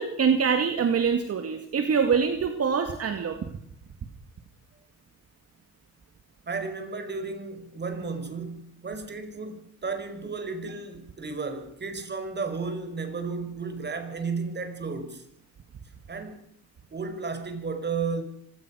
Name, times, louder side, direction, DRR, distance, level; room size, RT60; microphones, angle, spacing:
voice 1, 0.0-3.4, right 6 dB, 55° right, 2.2 m, -24 dB
voice 2, 6.5-15.3 16.1-16.4 16.9-18.2, right 4 dB, 35° right, 5.1 m, -33 dB
25.5 x 17.5 x 6.4 m
cardioid pair, 90°, 30 cm